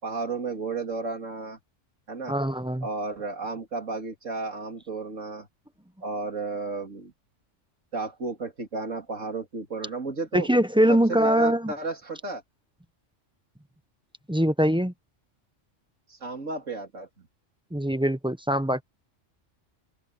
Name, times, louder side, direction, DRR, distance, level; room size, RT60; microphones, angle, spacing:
voice 1, 0.0-1.6 2.1-2.4 2.8-5.5 6.0-7.1 7.9-10.5 10.9-12.4 16.1-17.1, right 3 dB, 85° right, 3.2 m, -33 dB
voice 2, 2.3-2.9 10.3-11.7 14.3-14.9 17.7-18.8, equal, 5° right, 0.7 m, -22 dB
open air
omnidirectional pair, 1.3 m